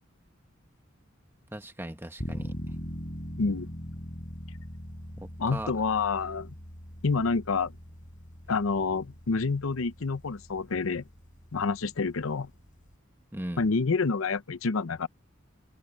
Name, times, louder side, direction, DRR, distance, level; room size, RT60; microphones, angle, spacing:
voice 1, 1.5-2.5 5.2-5.7 13.3-13.7, right 1 dB, 10° right, 1.5 m, -38 dB
sound 1, 2.2-12.9, equal, 40° left, 5.7 m, -42 dB
voice 2, 3.4-3.7 5.4-6.5 7.0-7.7 8.5-11.0 11.5-12.5 13.6-15.1, left 4 dB, 85° left, 0.7 m, -28 dB
head